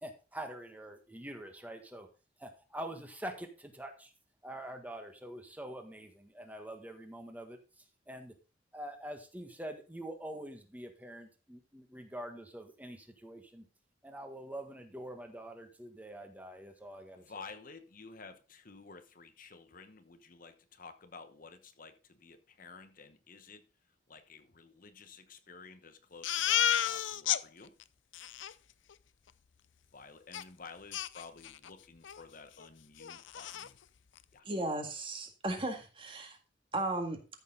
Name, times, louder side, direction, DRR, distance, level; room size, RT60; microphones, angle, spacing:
voice 1, 0.0-2.1 2.4-4.1 4.4-7.6 8.1-8.3 8.7-13.6 14.0-17.4, right 1 dB, 10° right, 1.5 m, -45 dB
voice 2, 17.2-23.7 24.1-27.7 29.9-33.8 34.3-34.5, left 4 dB, 45° left, 1.0 m, -52 dB
Crying sobbing, 26.2-27.4 27.8-27.9 28.1-28.5 30.3-30.4 30.9-31.7 32.0-32.2 32.6-32.7 33.0-33.7, left 11 dB, 85° left, 0.5 m, -32 dB
voice 3, 34.5-36.4 36.7-37.2, right 2 dB, 30° right, 1.8 m, -35 dB
13.5 x 6.6 x 3.8 m
head